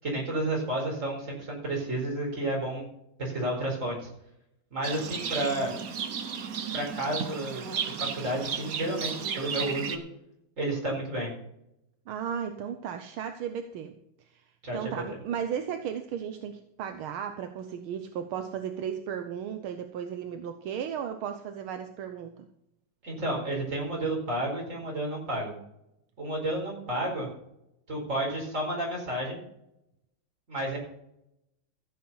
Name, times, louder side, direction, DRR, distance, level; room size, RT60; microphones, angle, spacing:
voice 1, 0.0-2.9 3.2-4.0 4.7-5.8 6.7-7.7 8.0-10.0 10.6-11.3 14.6-14.9 23.0-25.5 26.2-27.3 27.9-29.4 30.5-30.8, right 1 dB, 35° right, -2 dB, 5.0 m, -31 dB
Livestock farm animals working animals, 4.8-10.0, right 7 dB, 50° right, 1.3 m, -34 dB
voice 2, 12.1-13.9 14.3-14.4 14.7-22.4, right 8 dB, 75° right, 7 dB, 1.7 m, -35 dB
15.0 x 7.8 x 5.6 m, 0.80 s
omnidirectional pair, 2.3 m